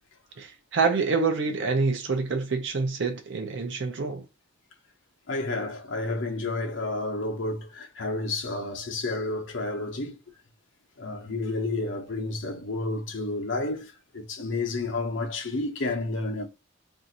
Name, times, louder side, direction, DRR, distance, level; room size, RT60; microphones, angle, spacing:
voice 1, 0.4-4.3, right 4 dB, 60° right, 0.5 m, -27 dB
voice 2, 5.3-10.2 11.0-16.5, left 2 dB, 65° left, 0.8 m, -30 dB
2.7 x 2.5 x 4.0 m
head